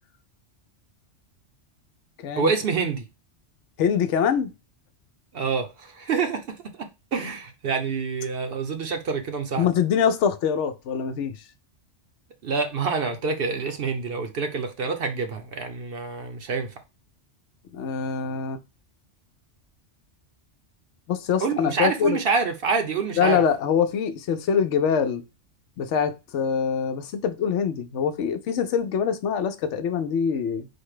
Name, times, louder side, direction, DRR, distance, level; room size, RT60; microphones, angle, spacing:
voice 1, 2.4-3.0 5.3-6.4 7.1-9.7 12.4-16.7 21.4-23.4, right 5 dB, 60° right, 0.8 m, -27 dB
voice 2, 3.8-4.5 9.6-11.4 17.7-18.6 21.1-22.2 23.2-25.2 25.8-30.7, left 7 dB, 80° left, 0.9 m, -24 dB
4.5 x 2.2 x 4.7 m
omnidirectional pair, 1.2 m